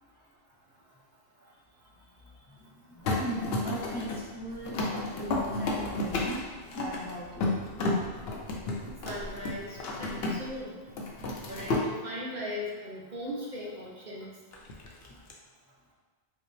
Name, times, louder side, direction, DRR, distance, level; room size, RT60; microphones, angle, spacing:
voice 1, 2.0-4.8 5.1-7.6 15.0-15.1, equal, 10° left, -7 dB, 0.6 m, -39 dB
sound 1, 3.0-10.6 10.9-11.9 14.5-15.3, left 2 dB, 70° left, 0.8 m, -32 dB
voice 2, 9.0-10.8 11.5-14.3, left 1 dB, 50° right, -5 dB, 0.8 m, -38 dB
5.2 x 2.1 x 3.2 m, 1.4 s
omnidirectional pair, 1.1 m